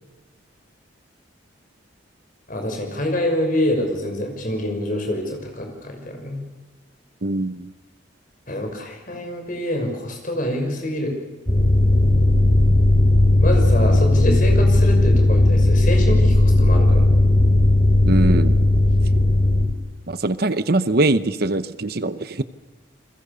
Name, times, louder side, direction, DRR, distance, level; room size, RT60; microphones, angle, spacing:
voice 1, 2.5-6.4 8.5-11.1 13.4-17.1, left 1 dB, 45° left, 3 dB, 6.2 m, -26 dB
voice 2, 7.2-7.7 18.0-18.7 20.1-22.4, right 2 dB, 50° right, 13 dB, 0.9 m, -22 dB
sound 1, 11.5-19.7, left 1 dB, 25° left, 3.2 m, -16 dB
29.0 x 22.0 x 6.9 m, 1.2 s
head